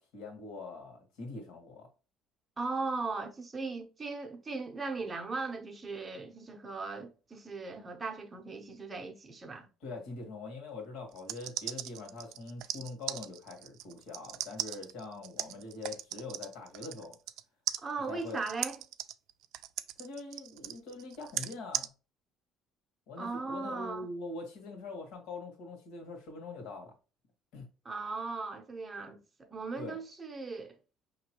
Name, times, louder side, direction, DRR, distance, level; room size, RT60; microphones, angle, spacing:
voice 1, 0.0-1.9 9.8-17.2 18.1-18.4 20.0-21.9 23.1-26.9 27.5-27.6 29.8-30.0, left 3 dB, 70° left, 1.6 m, -43 dB
voice 2, 2.6-9.7 17.8-18.8 23.2-24.1 27.8-30.8, right 3 dB, 15° right, 0.7 m, -38 dB
sound 1, 11.1-17.4 17.7-21.9, right 13 dB, 65° right, 0.3 m, -38 dB
5.1 x 2.9 x 2.9 m
cardioid pair, 170°, 0 cm